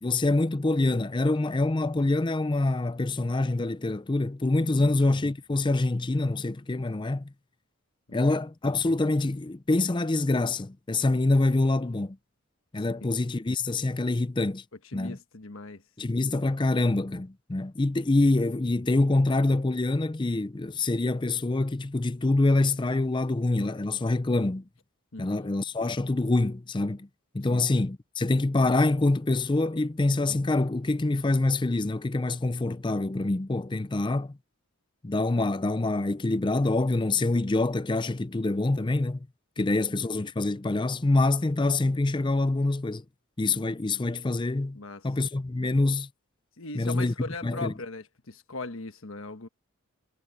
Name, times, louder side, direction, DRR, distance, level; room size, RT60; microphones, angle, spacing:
voice 1, 0.0-7.3 8.1-12.2 12.7-14.6 14.9-15.2 16.0-24.6 25.2-27.1 27.3-34.4 35.0-39.2 39.6-43.0 43.4-44.8 45.0-46.1 46.7-47.1 47.4-47.7, left 2 dB, 20° left, 0.5 m, -25 dB
voice 2, 4.6-5.0 8.1-8.4 12.8-13.1 14.8-15.8 25.1-25.5 27.5-27.7 39.6-39.8 44.7-45.1 46.6-49.5, left 3 dB, 65° left, 1.3 m, -40 dB
head